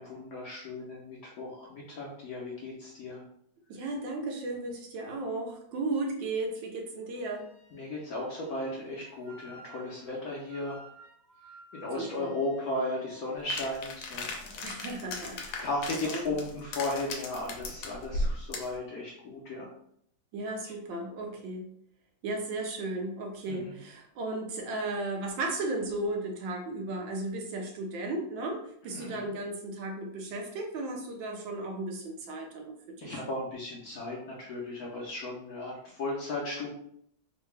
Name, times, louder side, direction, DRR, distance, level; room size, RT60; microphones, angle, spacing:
voice 1, 0.0-3.2 7.7-10.9 11.7-14.7 15.1-15.2 15.6-19.7 23.5-23.7 28.9-29.2 33.0-36.7, left 2 dB, 65° left, -3 dB, 1.0 m, -36 dB
voice 2, 3.7-7.5 12.0-12.3 14.6-15.7 16.0-16.4 20.3-21.7 22.2-32.7 33.0-33.2, right 2 dB, 75° right, 1 dB, 1.4 m, -35 dB
Wind instrument woodwind instrument, 7.2-13.5, right 2 dB, 50° right, 1.2 m, -55 dB
sound 1, 13.5-18.8, left 2 dB, 85° left, 1.4 m, -36 dB
3.8 x 2.2 x 3.2 m, 0.69 s
omnidirectional pair, 2.1 m